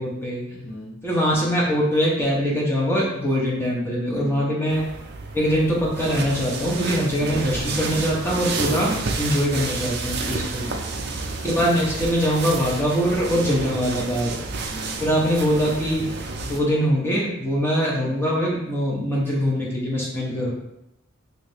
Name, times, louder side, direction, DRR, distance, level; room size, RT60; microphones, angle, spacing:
voice 1, 0.0-0.4 1.0-4.9 5.3-10.7 11.4-14.4 15.0-16.0 16.4-20.5, equal, 10° left, -4 dB, 0.7 m, -23 dB
voice 2, 0.5-0.9 4.2-4.5 10.6-10.9 14.6-15.0 18.0-18.2 20.1-20.5, equal, 60° left, -6 dB, 0.8 m, -40 dB
sound 1, 4.7-16.6, right 3 dB, 50° right, 0.4 m, -30 dB
3.3 x 2.6 x 3.3 m, 0.84 s
head